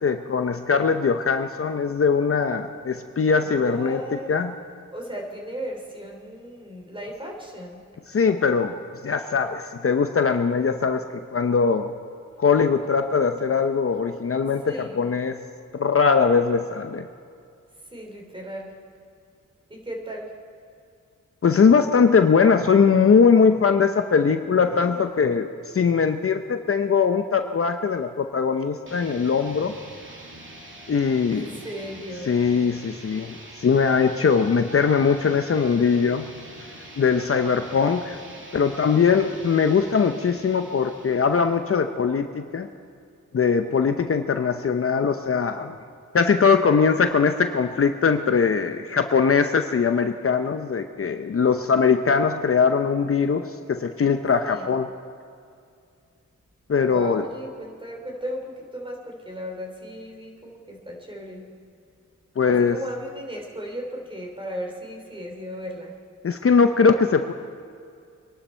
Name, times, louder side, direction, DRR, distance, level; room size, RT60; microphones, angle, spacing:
voice 1, 0.0-4.0 4.3-4.5 8.1-8.7 9.0-11.0 11.3-11.9 12.4-15.4 15.8-17.0 21.4-25.5 25.7-29.7 30.9-31.5 32.3-36.3 37.0-38.2 38.5-42.7 43.3-45.8 46.1-54.9 56.7-57.2 62.4-62.8 66.2-67.3, left 5 dB, 45° left, 7 dB, 0.8 m, -21 dB
voice 2, 3.4-4.3 4.9-7.8 14.6-15.0 17.7-18.8 19.7-20.4 31.3-32.4 54.4-54.7 56.8-61.5 62.5-66.0, equal, 15° right, 0 dB, 3.3 m, -36 dB
sound 1, 28.9-41.7, right 1 dB, 40° right, 2.3 m, -44 dB
24.5 x 11.5 x 4.4 m, 2.4 s
wide cardioid pair, 90°, 32 cm